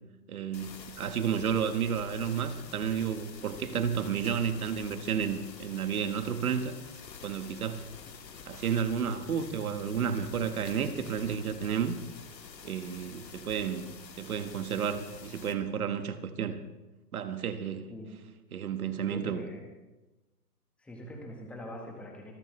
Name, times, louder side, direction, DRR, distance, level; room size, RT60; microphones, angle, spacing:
voice 1, 0.3-6.7 7.2-7.8 8.5-12.0 12.6-16.6 17.1-17.9 18.5-19.5, right 7 dB, 60° right, 10 dB, 1.5 m, -31 dB
sound 1, 0.5-15.5, left 5 dB, 85° left, 2.1 m, -48 dB
voice 2, 18.9-19.6 20.8-22.4, left 1 dB, ahead, 0 dB, 1.3 m, -43 dB
25.5 x 12.5 x 3.2 m, 1.1 s
hypercardioid pair, 160°, 49 cm